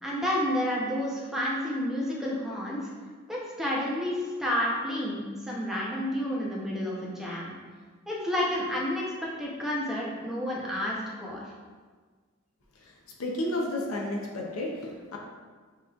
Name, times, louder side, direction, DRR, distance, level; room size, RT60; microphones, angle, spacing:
voice 1, 0.0-2.9 3.3-7.5 8.1-11.4, left 1 dB, ahead, -5 dB, 0.7 m, -30 dB
voice 2, 13.2-15.2, left 1 dB, 90° left, -1 dB, 0.7 m, -32 dB
7.4 x 3.0 x 2.4 m, 1.5 s
head